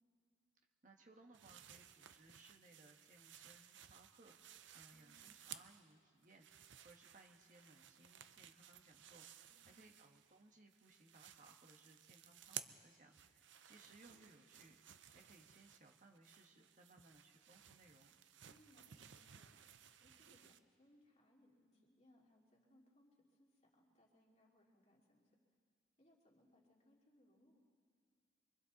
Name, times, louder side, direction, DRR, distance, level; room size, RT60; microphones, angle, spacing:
voice 1, 0.8-14.8 15.1-18.1, right 2 dB, 40° right, 1 dB, 1.3 m, -65 dB
sound 1, 1.3-5.9 6.2-10.4 10.7-20.6, right 10 dB, 70° right, 0.6 m, -58 dB
voice 2, 9.5-9.9 18.5-19.6 20.0-25.4 26.0-27.7, left 1 dB, 35° left, -3 dB, 2.8 m, -71 dB
26.5 x 24.0 x 4.1 m, 2.2 s
head